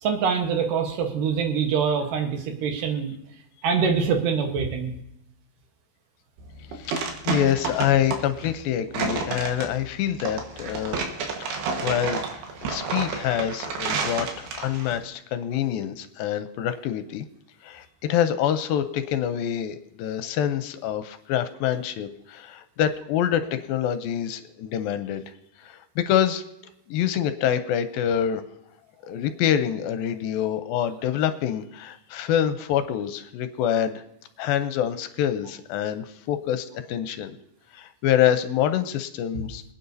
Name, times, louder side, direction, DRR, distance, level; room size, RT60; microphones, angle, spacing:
voice 1, 0.0-3.1 3.6-4.9, right 6 dB, 70° right, 4 dB, 2.6 m, -24 dB
sound 1, 6.4-15.0, right 5 dB, 85° right, 3.4 m, -30 dB
voice 2, 6.8-11.0 11.4-12.2 12.6-17.3 17.6-25.2 25.7-26.4 26.9-28.4 29.0-34.0 34.4-37.3 37.7-39.6, left 10 dB, 80° left, 10 dB, 2.3 m, -26 dB
25.5 x 9.2 x 2.7 m, 0.78 s
omnidirectional pair, 4.3 m